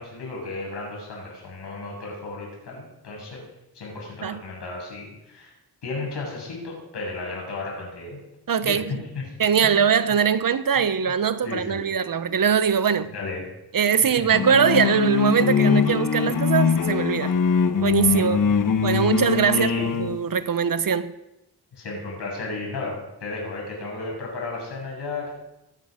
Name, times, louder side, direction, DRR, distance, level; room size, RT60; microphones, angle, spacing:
voice 1, 0.0-3.4 3.7-5.5 5.8-8.2 8.6-9.2 9.6-9.8 11.4-11.8 13.1-13.5 14.0-14.3 18.1-18.6 19.5-20.0 21.7-25.3, left 3 dB, 85° left, 7.0 m, -34 dB
voice 2, 8.5-8.8 9.4-13.1 13.7-17.3 17.8-18.4 18.8-19.7 20.0-21.1, right 7 dB, 55° right, 1.0 m, -21 dB
sound 1, 14.3-20.2, left 6 dB, 55° left, 1.2 m, -22 dB
23.0 x 9.6 x 5.1 m
cardioid pair, 80°, 39 cm